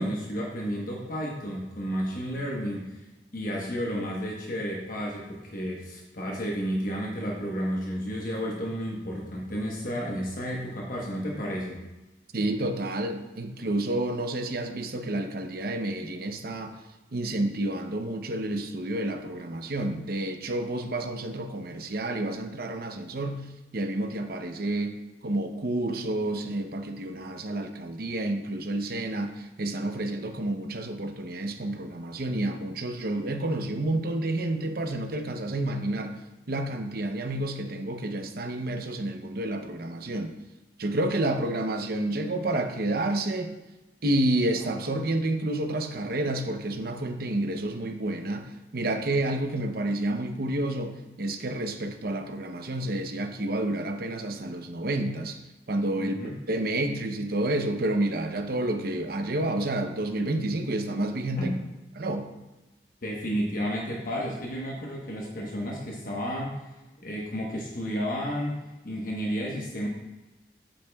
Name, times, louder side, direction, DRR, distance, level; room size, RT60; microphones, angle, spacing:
voice 1, 0.0-2.9 3.3-11.8 56.0-56.3 61.4-61.6 63.0-66.6 67.0-68.6 68.8-69.9, equal, 50° left, -2 dB, 1.1 m, -32 dB
voice 2, 12.3-16.8 17.1-25.0 25.2-36.2 36.5-40.3 40.8-43.5 44.0-55.4 55.7-61.5 62.0-62.3, right 1 dB, 55° right, 6 dB, 0.8 m, -29 dB
8.5 x 8.3 x 2.3 m, 1.1 s
head